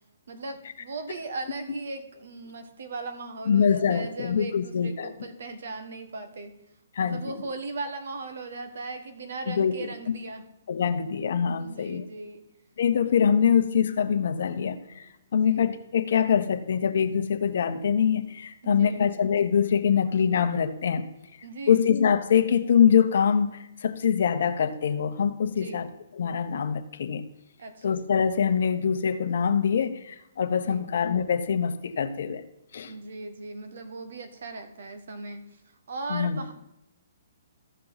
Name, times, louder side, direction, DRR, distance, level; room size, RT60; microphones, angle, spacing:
voice 1, 0.3-6.5 7.0-10.4 11.5-12.4 15.3-15.7 18.6-19.0 21.4-21.9 25.5-25.8 27.6-28.0 30.6-30.9 32.9-35.4 35.9-36.5, right 3 dB, 70° right, 7 dB, 1.4 m, -38 dB
voice 2, 3.5-5.1 6.9-7.2 9.5-9.9 10.7-12.0 12.8-15.0 15.3-21.1 21.7-27.2 27.8-32.4 32.7-32.9 36.1-36.4, left 7 dB, 65° left, 8 dB, 1.0 m, -24 dB
14.5 x 5.7 x 4.0 m, 0.87 s
hypercardioid pair, 150°, 0 cm